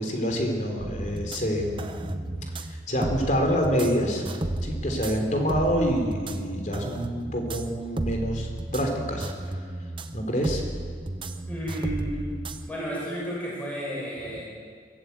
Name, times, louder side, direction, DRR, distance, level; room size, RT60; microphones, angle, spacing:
voice 1, 0.0-2.1 2.9-4.2 4.6-9.3 10.1-10.6, equal, 45° left, 3 dB, 3.5 m, -27 dB
sound 1, 0.8-12.7, right 1 dB, 30° right, 0.8 m, -34 dB
voice 2, 11.5-12.3 12.7-14.4, right 1 dB, 10° left, -6 dB, 7.4 m, -32 dB
22.0 x 15.0 x 8.2 m, 2.1 s
head